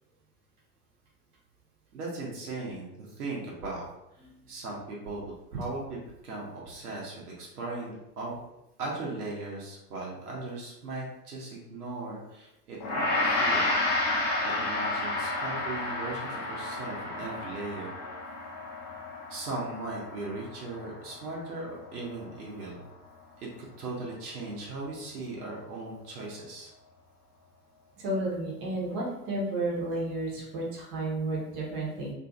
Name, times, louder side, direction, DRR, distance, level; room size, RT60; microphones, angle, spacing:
voice 1, 1.9-3.8 4.5-8.4 8.8-13.7 14.1-17.9 19.3-22.9 23.4-26.7, right 2 dB, 65° right, -4 dB, 0.9 m, -38 dB
Gong, 12.8-22.2, left 2 dB, 25° left, 0.4 m, -31 dB
voice 2, 28.0-32.1, right 2 dB, 35° right, -4 dB, 0.9 m, -32 dB
2.6 x 2.6 x 2.3 m, 0.88 s
figure-of-eight pair, 85°, 50 cm